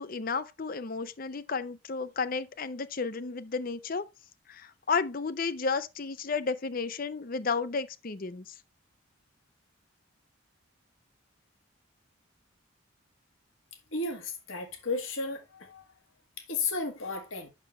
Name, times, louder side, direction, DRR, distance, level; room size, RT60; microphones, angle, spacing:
voice 1, 0.0-4.0 4.5-8.5, left 4 dB, 45° left, 0.6 m, -32 dB
voice 2, 13.9-15.8 16.5-17.5, left 3 dB, 75° left, 1.7 m, -33 dB
8.9 x 6.5 x 3.2 m
head